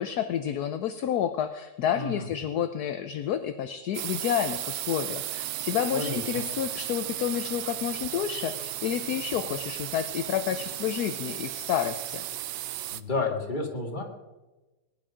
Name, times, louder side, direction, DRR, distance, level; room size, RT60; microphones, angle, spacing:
voice 1, 0.0-12.2, left 9 dB, 70° left, 9 dB, 1.2 m, -30 dB
voice 2, 1.9-2.3 5.9-6.5 12.9-14.0, left 3 dB, 25° left, 1 dB, 2.2 m, -31 dB
sound 1, 3.9-13.0, right 13 dB, 85° right, 1.3 m, -35 dB
20.0 x 10.5 x 5.0 m, 1.1 s
omnidirectional pair, 1.9 m